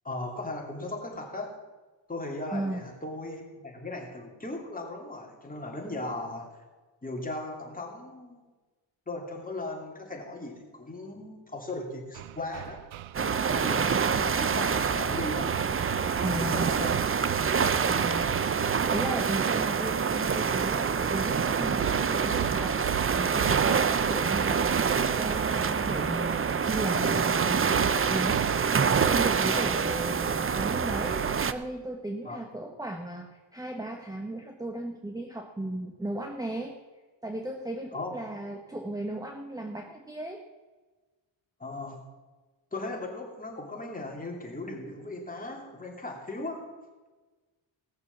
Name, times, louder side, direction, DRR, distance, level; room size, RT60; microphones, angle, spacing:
voice 1, 0.0-1.6 2.1-6.6 7.0-8.5 9.1-12.8 13.3-15.6 15.9-17.0 29.3-29.8 32.2-32.4 37.9-38.1 41.6-42.0 42.7-46.7, left 2 dB, 15° left, 0 dB, 2.8 m, -38 dB
voice 2, 2.5-2.9 16.2-16.7 17.9-18.3 18.9-22.8 23.1-24.8 25.2-28.5 28.7-36.8 37.2-40.4, right 1 dB, 10° right, 3 dB, 1.1 m, -36 dB
Hammer, 12.1-19.6 21.8-24.2 27.7-29.7, right 13 dB, 75° right, 0.6 m, -39 dB
sound 1, 13.1-31.5, right 6 dB, 30° right, 0.6 m, -26 dB
17.5 x 6.8 x 7.2 m, 1.3 s
wide cardioid pair, 120°, 48 cm